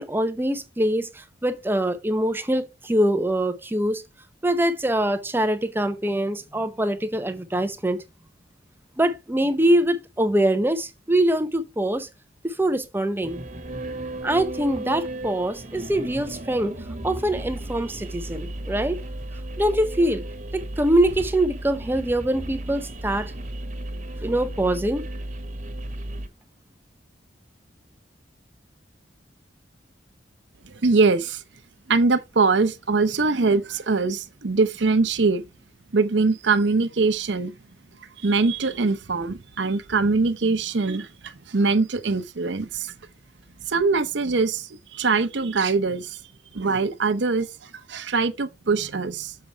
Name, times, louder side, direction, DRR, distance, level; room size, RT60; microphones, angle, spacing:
voice 1, 0.0-4.0 4.4-8.0 9.0-12.1 12.4-13.4 14.2-16.7 17.0-19.0 19.6-20.2 20.5-23.3 24.2-25.0, right 1 dB, 10° right, 0.7 m, -23 dB
sound 1, 13.2-26.3, right 1 dB, 40° right, 1.5 m, -34 dB
voice 2, 30.7-31.4 31.9-35.4 35.9-37.6 38.2-42.9 43.7-46.2 46.5-49.3, right 4 dB, 75° right, 0.7 m, -23 dB
6.8 x 4.9 x 4.4 m
head